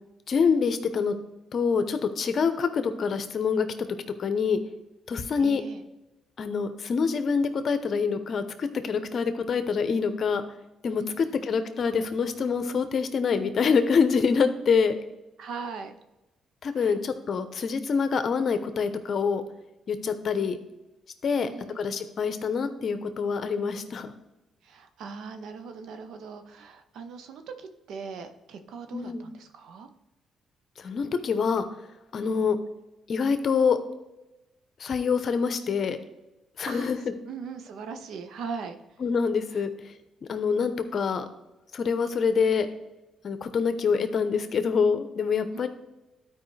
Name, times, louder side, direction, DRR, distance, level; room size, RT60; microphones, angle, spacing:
voice 1, 0.3-1.1 1.5-3.7 4.2-4.6 5.1-5.6 6.4-10.4 10.8-15.0 16.6-19.4 19.9-20.6 21.2-21.5 21.7-24.1 28.9-29.3 30.8-31.7 32.1-32.6 33.1-33.8 34.8-36.0 36.6-37.0 39.0-39.7 40.3-41.2 41.7-42.7 43.2-45.7, left 5 dB, 55° left, 10 dB, 0.8 m, -25 dB
voice 2, 5.4-5.8 11.0-11.5 15.4-15.9 16.8-17.0 21.3-21.9 24.6-29.9 32.2-32.5 36.7-36.9 37.3-39.0 39.5-39.6 45.5-45.7, right 5 dB, 75° right, 7 dB, 0.8 m, -40 dB
12.0 x 4.9 x 3.3 m, 1.0 s
cardioid pair, 90°, 0 cm